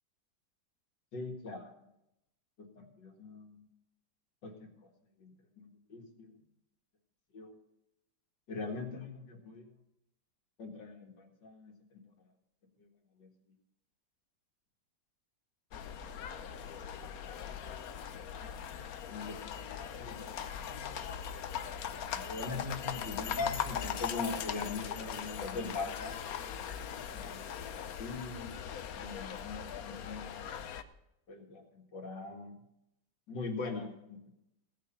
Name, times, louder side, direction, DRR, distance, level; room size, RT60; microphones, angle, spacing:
voice 1, 1.1-1.7 2.6-3.6 4.4-4.9 5.2-5.3 5.6-6.3 7.3-7.5 8.5-9.7 10.6-12.0 12.8-12.9 13.2-13.3 19.1-20.4 20.6-21.0 21.9-26.2 27.1-27.7 28.0-28.6 28.9-30.4 31.3-32.5 33.3-34.4, left 3 dB, 80° left, 3 dB, 2.7 m, -42 dB
sound 1, 15.7-30.8, left 8 dB, 60° left, 1.2 m, -40 dB
17.0 x 6.8 x 8.8 m, 0.83 s
omnidirectional pair, 1.9 m